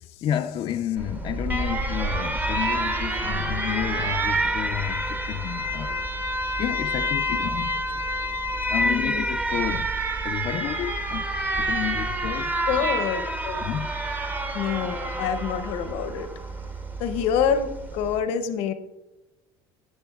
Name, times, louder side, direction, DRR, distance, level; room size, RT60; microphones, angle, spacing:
voice 1, 0.2-6.2 6.6-8.0 8.7-12.6 13.6-13.9, left 11 dB, 50° left, 0.4 m, -31 dB
Alarm, 1.0-18.2, right 1 dB, 15° right, 0.8 m, -28 dB
voice 2, 8.8-9.3 12.6-13.6 14.5-16.3 17.0-18.7, left 7 dB, 75° left, 0.8 m, -26 dB
10.5 x 8.1 x 2.3 m
supercardioid pair, 100°, 11 cm